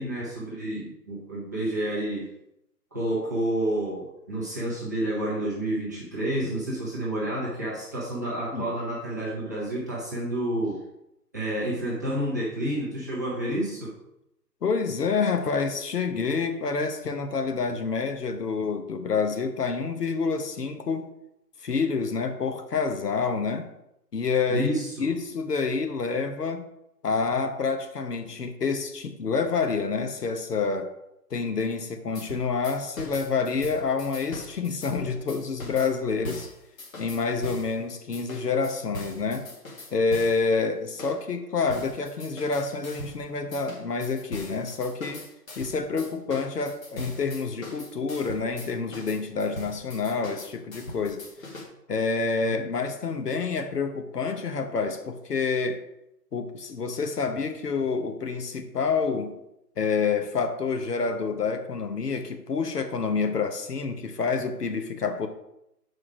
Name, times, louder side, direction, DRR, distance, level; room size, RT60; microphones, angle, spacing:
voice 1, 0.0-2.3 2.9-10.8 11.3-13.9 24.5-25.1 52.5-52.6, right 1 dB, 10° right, -9 dB, 0.7 m, -29 dB
voice 2, 14.6-21.1 21.6-23.7 24.1-24.7 25.0-26.7 27.0-30.9 31.3-36.5 37.0-39.5 39.9-45.3 45.6-51.2 51.9-55.8 56.3-59.3 59.8-65.3, left 4 dB, 70° left, 7 dB, 1.0 m, -28 dB
sound 1, 32.2-37.7 38.1-40.5 41.0-41.2 41.7-43.2 43.5-51.6, left 1 dB, 55° left, 1.7 m, -40 dB
6.1 x 4.9 x 4.8 m, 0.85 s
figure-of-eight pair, 150°, 49 cm